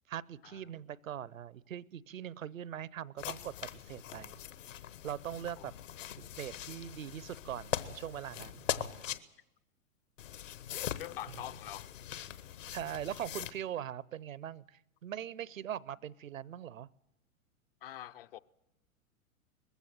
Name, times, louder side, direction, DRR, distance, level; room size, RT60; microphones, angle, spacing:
voice 1, 0.1-4.4 5.0-5.7 6.2-9.1 12.7-16.9, right 10 dB, 65° right, 0.7 m, -41 dB
sound 1, 3.2-9.2 10.2-13.5, left 11 dB, 60° left, 1.2 m, -41 dB
voice 2, 11.0-11.9 17.8-18.4, left 13 dB, 40° left, 0.7 m, -44 dB
20.5 x 15.5 x 9.1 m
figure-of-eight pair, 100°, 43 cm